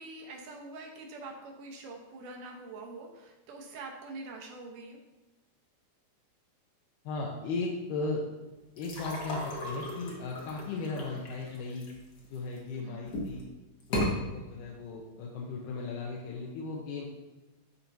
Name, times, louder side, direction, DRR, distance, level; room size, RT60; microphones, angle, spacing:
voice 1, 0.0-5.0 12.7-13.0 14.0-14.3, right 3 dB, 80° right, 0 dB, 2.6 m, -45 dB
voice 2, 7.0-8.2 8.8-11.9 12.3-13.4 13.9-17.1, left 3 dB, 80° left, -2 dB, 2.4 m, -36 dB
sound 1, 8.8-12.6 13.0-13.4 13.8-14.1, left 1 dB, 55° left, 1.2 m, -35 dB
12.5 x 4.4 x 2.7 m, 1.1 s
omnidirectional pair, 3.7 m